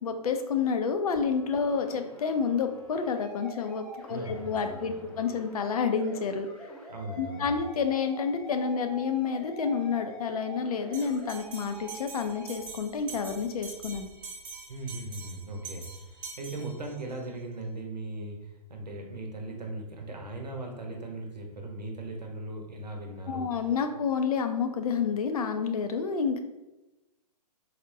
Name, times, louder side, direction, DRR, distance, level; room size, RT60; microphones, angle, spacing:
voice 1, 0.0-6.5 7.2-14.1 23.3-26.4, left 6 dB, 60° left, 7 dB, 0.5 m, -29 dB
sound 1, 1.1-12.5, equal, 5° left, 0.5 m, -46 dB
voice 2, 4.1-5.1 6.9-7.6 14.7-23.5, right 2 dB, 90° right, 2 dB, 0.8 m, -39 dB
Bell, 10.9-17.2, right 5 dB, 20° right, 0.9 m, -45 dB
4.1 x 2.1 x 2.6 m, 1.0 s
figure-of-eight pair, 120°, 21 cm